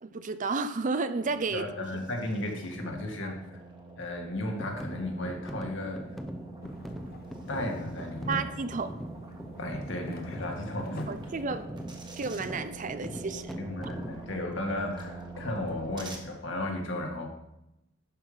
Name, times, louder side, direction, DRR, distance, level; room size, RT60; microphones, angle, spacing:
voice 1, 0.0-1.6 3.2-3.3 8.3-8.9 11.1-11.7 12.2-13.6, right 4 dB, 40° right, 11 dB, 0.5 m, -32 dB
sound 1, 1.2-16.2, right 3 dB, 20° right, 1.3 m, -46 dB
voice 2, 1.5-3.6 4.0-6.0 7.5-8.5 9.6-11.1 13.6-17.3, left 1 dB, 65° left, 2 dB, 1.9 m, -34 dB
sound 2, 4.6-14.3, equal, ahead, 0.7 m, -41 dB
sound 3, 6.6-11.7, left 1 dB, 50° left, 0.9 m, -47 dB
11.0 x 5.6 x 5.1 m, 0.88 s
head